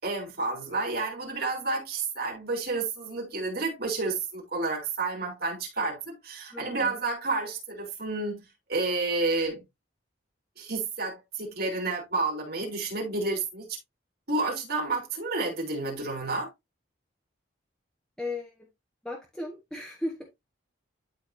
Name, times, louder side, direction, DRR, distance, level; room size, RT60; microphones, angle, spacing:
voice 1, 0.0-8.4 8.7-9.6 10.6-13.7 14.3-16.5, right 3 dB, 50° right, 4.0 m, -30 dB
voice 2, 6.5-7.0 18.2-18.7 19.0-20.3, left 2 dB, 5° left, 1.5 m, -36 dB
12.5 x 4.3 x 2.7 m
head